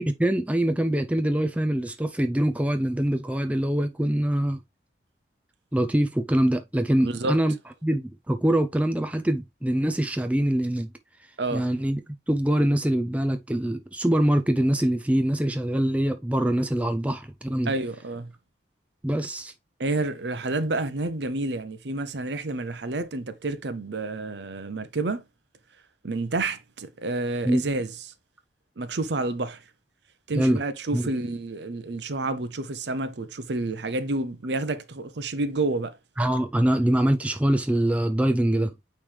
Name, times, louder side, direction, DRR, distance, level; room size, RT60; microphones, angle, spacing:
voice 1, 0.0-4.6 5.7-7.5 7.8-10.9 11.5-12.0 12.3-17.7 19.0-19.5 27.5-27.6 30.4-30.6 30.9-31.1 36.2-38.7, right 1 dB, 5° right, 0.4 m, -24 dB
voice 2, 7.0-7.4 11.4-11.7 17.7-18.3 19.8-25.2 26.0-28.0 28.8-29.6 30.3-36.0, right 2 dB, 65° right, 0.7 m, -29 dB
8.7 x 3.2 x 3.3 m
head